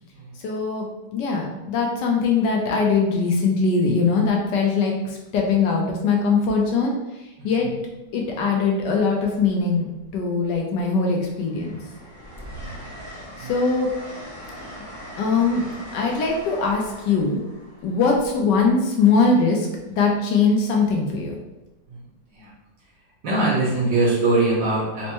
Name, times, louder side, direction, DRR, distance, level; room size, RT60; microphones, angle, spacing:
voice 1, 0.4-6.9 7.4-7.7 8.1-9.9 10.1-11.8 13.4-13.9 15.2-15.6 15.9-17.4 17.8-21.3, left 4 dB, 75° left, 0 dB, 1.2 m, -21 dB
Train, 7.9-8.1 9.4-10.1 10.5-19.3 20.9-21.1, equal, 20° right, 0.4 m, -41 dB
voice 2, 23.2-25.1, right 2 dB, 85° right, -7 dB, 1.7 m, -22 dB
4.3 x 2.1 x 2.9 m, 1.0 s
omnidirectional pair, 2.0 m